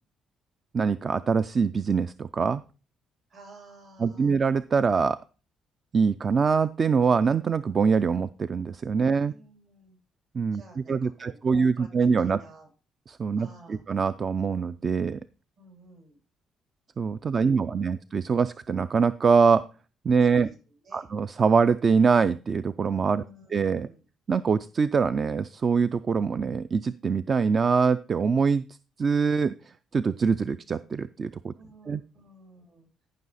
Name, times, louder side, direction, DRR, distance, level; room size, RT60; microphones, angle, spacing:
voice 1, 0.7-2.6 4.0-5.2 5.9-9.3 10.3-10.6 10.9-12.4 13.1-15.2 17.0-19.6 20.0-20.5 20.9-23.2 23.5-23.9 24.3-28.6 29.0-29.5 29.9-31.5 31.9-32.0, right 5 dB, 40° right, 14 dB, 0.4 m, -24 dB
voice 2, 3.3-4.3 9.0-10.0 10.5-11.9 12.2-12.7 13.4-13.8 15.6-16.2 17.3-18.0 20.2-20.5 20.8-21.1 23.2-24.0 31.6-32.9, right 2 dB, 65° right, 0 dB, 6.9 m, -52 dB
14.0 x 5.7 x 4.1 m, 0.35 s
cardioid pair, 95°, 0 cm